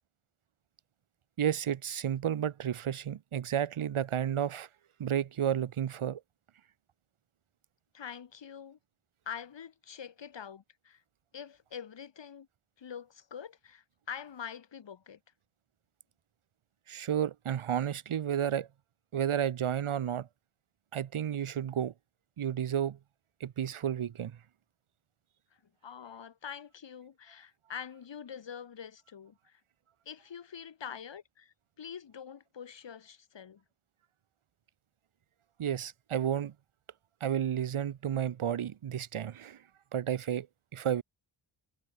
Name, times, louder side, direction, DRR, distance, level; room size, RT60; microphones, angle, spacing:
voice 1, 1.4-4.7 5.0-6.2 16.9-18.7 19.1-20.3 20.9-21.9 22.4-23.0 23.4-24.4 35.6-36.5 37.2-39.6 39.9-40.5 40.7-41.0, right 9 dB, 75° right, 2.5 m, -31 dB
voice 2, 7.9-8.8 9.2-11.0 11.3-12.5 12.8-15.2 25.8-29.6 30.0-33.6, left 7 dB, 60° left, 3.3 m, -45 dB
wide cardioid pair, 125°, 50 cm